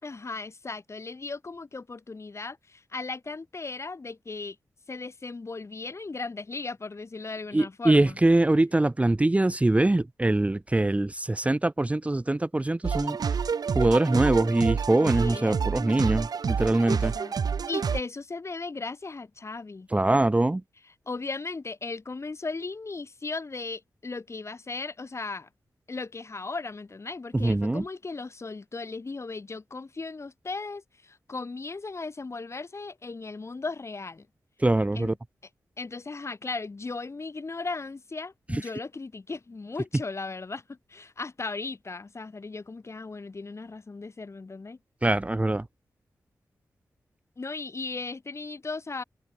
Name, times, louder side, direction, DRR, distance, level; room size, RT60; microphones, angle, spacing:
voice 1, 0.0-4.6 4.9-8.2 15.0-15.7 16.9-17.3 17.7-19.9 21.1-25.5 25.9-34.3 35.0-35.1 35.8-44.8 47.4-49.0, left 3 dB, 45° left, 5.5 m, -37 dB
voice 2, 7.5-13.4 13.7-17.1 19.9-20.6 27.3-27.8 34.6-35.1 38.5-38.6 45.0-45.7, right 2 dB, 20° right, 1.0 m, -23 dB
sound 1, 12.8-18.0, right 6 dB, 75° right, 1.8 m, -28 dB
cardioid pair, 70°, 7 cm